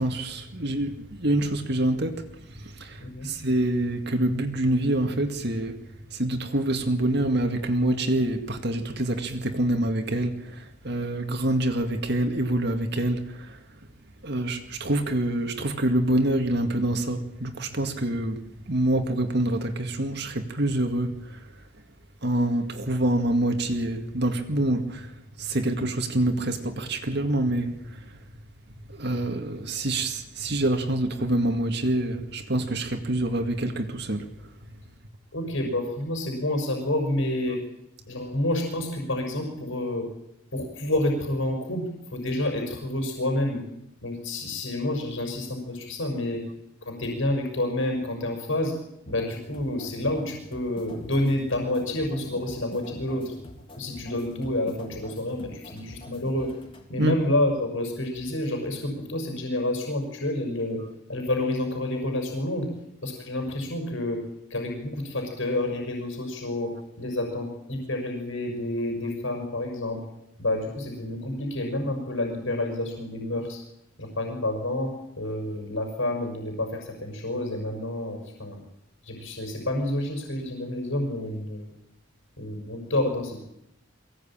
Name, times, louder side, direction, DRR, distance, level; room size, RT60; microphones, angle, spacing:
voice 1, 0.0-2.3 2.6-5.8 6.1-13.6 14.2-18.4 18.7-21.4 22.2-25.1 25.4-27.7 28.9-34.3 57.0-57.2, right 1 dB, 55° right, 2.1 m, -26 dB
voice 2, 35.3-37.6 38.1-40.1 40.5-43.6 44.0-46.4 46.9-48.7 49.1-53.3 53.8-56.5 56.9-60.8 61.1-62.7 63.0-64.2 64.5-70.0 70.4-73.6 74.0-78.6 79.0-81.7 82.4-83.4, left 1 dB, 70° left, 5.8 m, -29 dB
sound 1, 49.1-56.9, left 1 dB, 25° left, 3.3 m, -46 dB
23.5 x 17.5 x 8.8 m
head